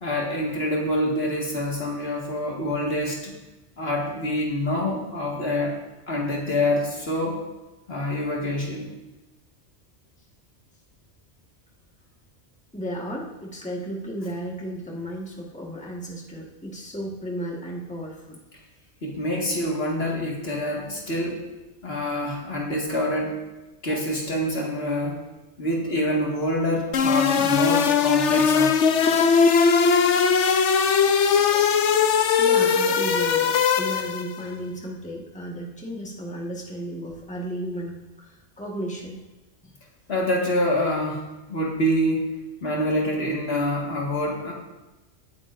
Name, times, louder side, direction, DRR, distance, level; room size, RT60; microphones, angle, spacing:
voice 1, 0.0-3.3 3.8-5.8 6.1-7.4 7.9-8.9 19.0-21.4 21.8-23.4 23.8-25.2 25.6-28.8 40.1-41.2 41.5-42.3 42.6-44.5, left 1 dB, 60° left, -2 dB, 2.1 m, -26 dB
voice 2, 12.7-18.4 23.9-24.0 31.4-39.2 39.6-39.7, equal, 5° left, -2 dB, 1.5 m, -34 dB
sound 1, 26.9-34.4, left 6 dB, 85° left, 1.1 m, -20 dB
17.5 x 8.9 x 2.6 m, 1.1 s
omnidirectional pair, 1.2 m